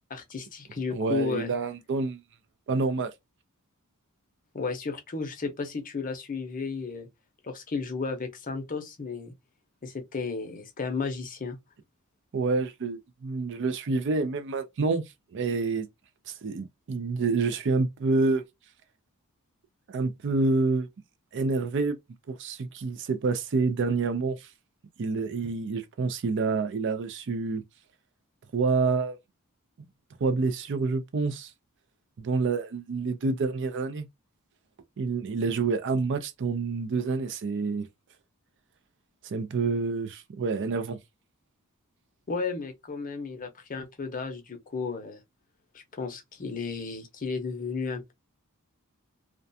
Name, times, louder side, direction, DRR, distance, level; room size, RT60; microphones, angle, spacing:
voice 1, 0.1-1.5 4.5-7.1 7.4-9.3 9.8-11.6 42.3-45.2 45.7-48.1, left 4 dB, 35° left, 0.6 m, -33 dB
voice 2, 0.9-2.2 2.7-3.1 12.3-15.0 15.3-15.9 16.3-18.4 19.9-20.9 21.3-22.0 22.3-24.5 25.0-27.6 28.5-29.2 30.2-31.5 32.2-34.1 35.0-37.9 39.2-41.0, right 4 dB, 55° right, 0.4 m, -28 dB
2.3 x 2.2 x 2.6 m
head